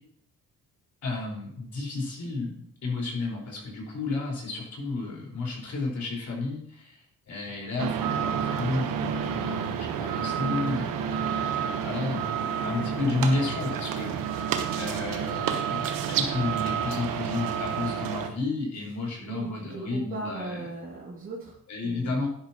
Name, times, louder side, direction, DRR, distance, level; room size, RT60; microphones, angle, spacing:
voice 1, 1.0-15.8 16.1-20.6 21.7-22.3, left 3 dB, 60° left, -2 dB, 5.1 m, -32 dB
sound 1, 7.8-18.3, right 7 dB, 90° right, 1.2 m, -29 dB
voice 2, 19.2-22.3, right 2 dB, 40° right, -6 dB, 2.9 m, -38 dB
11.5 x 11.0 x 3.1 m, 0.69 s
cardioid pair, 85°, 33 cm